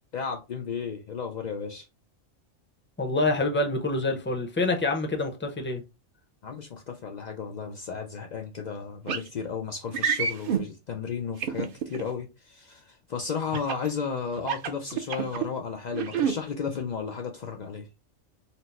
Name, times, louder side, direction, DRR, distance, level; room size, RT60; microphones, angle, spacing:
voice 1, 0.1-1.9 6.4-17.9, left 6 dB, 85° left, 0.3 m, -34 dB
voice 2, 3.0-5.8, left 2 dB, 15° left, 0.5 m, -26 dB
sound 1, 9.1-9.3 9.9-10.6 11.4-12.0 13.5-13.9 14.4-15.5 15.9-16.3, right 7 dB, 55° right, 0.6 m, -27 dB
4.3 x 2.0 x 4.0 m
omnidirectional pair, 1.4 m